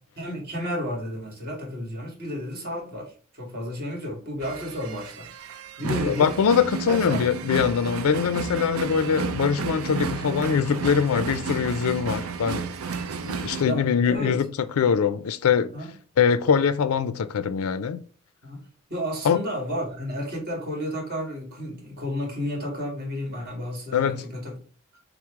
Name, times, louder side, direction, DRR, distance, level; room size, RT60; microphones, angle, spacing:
voice 1, 0.2-6.3 6.9-7.2 13.6-14.4 15.7-15.9 18.4-18.6 18.9-24.5, equal, 50° right, 1.8 m, -32 dB
sound 1, 4.4-13.6, right 5 dB, 75° right, 0.4 m, -32 dB
voice 2, 5.8-12.6 13.2-14.4 14.8-15.7 16.2-18.0 19.2-19.4 23.9-24.2, left 7 dB, 80° left, 0.4 m, -23 dB
5.9 x 2.0 x 3.6 m
head